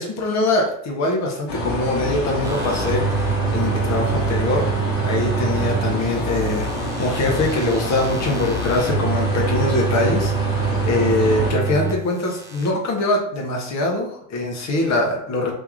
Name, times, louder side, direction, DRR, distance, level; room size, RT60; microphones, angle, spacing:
voice 1, 0.0-4.6 5.0-6.7 7.0-15.5, left 2 dB, 35° left, 0 dB, 1.3 m, -23 dB
sound 1, 1.5-11.5, left 1 dB, 50° left, 1.7 m, -26 dB
sound 2, 2.4-5.9 6.3-11.9 12.2-12.7, right 6 dB, 5° right, 0.5 m, -26 dB
3.5 x 2.9 x 3.7 m, 0.64 s
hypercardioid pair, 105°, 48 cm